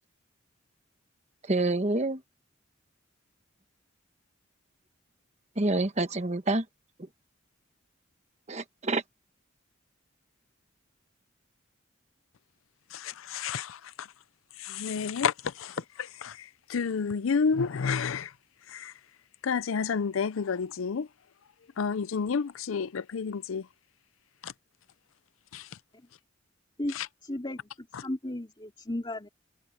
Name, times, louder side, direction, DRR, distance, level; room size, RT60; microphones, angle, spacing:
voice 1, 1.5-2.2 5.6-6.6 8.5-9.0, right 2 dB, 35° right, 1.2 m, -27 dB
voice 2, 12.9-14.1 14.6-18.3 18.7-18.9 19.4-21.1 21.8-23.7 24.4-24.5 25.5-25.7 26.9-27.1, left 5 dB, 85° left, 0.5 m, -30 dB
voice 3, 27.2-29.3, left 1 dB, 25° left, 2.6 m, -35 dB
head